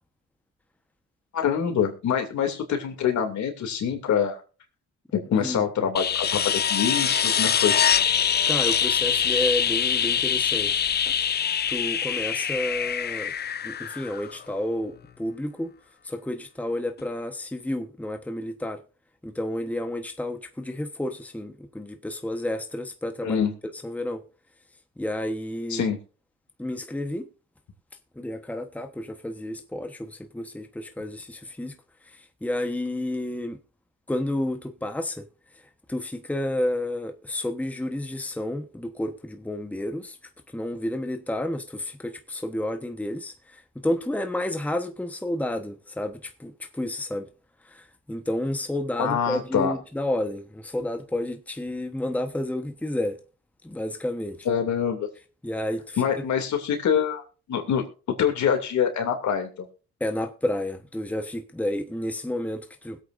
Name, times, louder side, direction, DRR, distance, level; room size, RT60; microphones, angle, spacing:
voice 1, 1.3-4.4 5.3-7.8 23.2-23.5 25.7-26.0 49.0-49.7 54.4-55.1 56.0-57.2 57.5-57.8 58.2-59.7, left 7 dB, 70° left, 2.7 m, -25 dB
sound 1, 6.0-14.6 17.0-17.1, left 8 dB, 35° left, 0.5 m, -24 dB
voice 2, 8.5-10.8 11.7-13.3 13.6-15.7 16.0-18.8 19.2-23.4 23.8-24.2 25.0-25.9 26.6-27.3 28.2-31.7 32.1-33.6 34.1-35.2 35.9-40.2 40.5-47.3 47.6-53.2 53.6-54.5 55.4-56.0 60.0-63.0, left 1 dB, 5° left, 1.1 m, -30 dB
21.0 x 8.2 x 2.6 m
cardioid pair, 90°, 30 cm